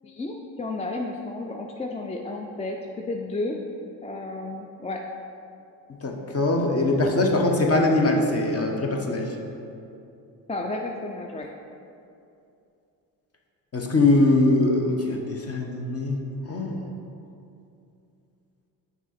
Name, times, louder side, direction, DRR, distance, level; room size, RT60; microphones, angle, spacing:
voice 1, 0.0-2.8 3.1-3.6 4.0-5.0 10.5-11.5, left 2 dB, 15° left, 1 dB, 0.4 m, -32 dB
voice 2, 6.0-9.3 13.7-16.2 16.5-16.8, left 2 dB, 30° left, 2 dB, 1.0 m, -22 dB
6.0 x 4.0 x 4.3 m, 2.6 s
hypercardioid pair, 55°, 45 cm